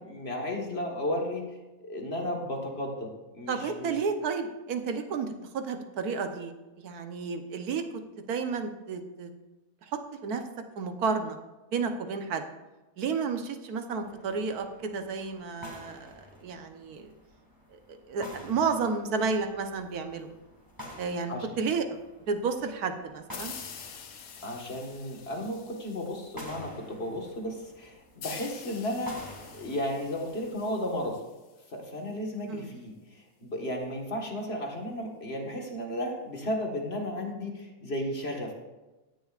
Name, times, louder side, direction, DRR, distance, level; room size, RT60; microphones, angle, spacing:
voice 1, 0.0-1.4 1.8-4.0 21.3-21.5 24.4-29.1 29.5-31.2 31.7-38.5, left 1 dB, 45° left, 1 dB, 1.8 m, -34 dB
voice 2, 3.5-5.3 5.5-6.5 6.8-7.8 8.3-9.3 10.2-10.4 10.8-11.4 11.7-12.4 13.0-17.1 18.1-20.3 21.0-22.0 22.3-23.5 32.5-32.7, right 5 dB, 85° right, 6 dB, 1.5 m, -31 dB
sound 1, 14.0-31.1, left 1 dB, 15° right, 2.0 m, -50 dB
sound 2, 23.3-26.7 28.2-31.7, left 7 dB, 70° left, 1.3 m, -46 dB
16.5 x 10.5 x 2.4 m, 1.1 s
omnidirectional pair, 1.6 m